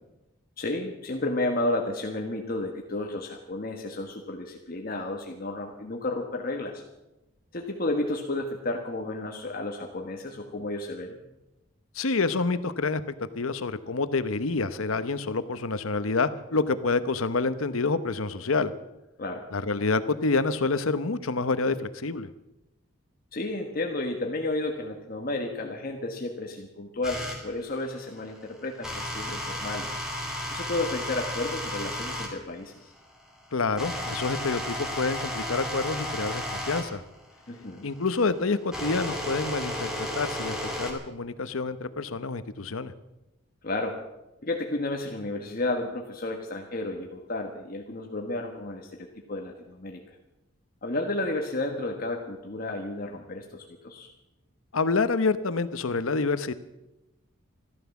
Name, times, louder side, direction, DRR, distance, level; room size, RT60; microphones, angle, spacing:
voice 1, 0.6-6.8 7.5-11.2 19.2-19.4 23.3-30.0 30.5-32.9 37.5-37.8 43.6-44.0 44.4-50.0 50.8-54.1, left 2 dB, 45° left, 2 dB, 1.4 m, -32 dB
voice 2, 11.9-13.0 13.3-18.7 19.5-22.3 33.5-37.0 37.8-42.9 54.7-56.5, left 3 dB, 85° left, 13 dB, 0.9 m, -27 dB
sound 1, 27.0-27.4 28.8-32.3 33.0-40.9, left 1 dB, 5° right, 2.8 m, -33 dB
14.0 x 13.0 x 7.1 m, 0.96 s
head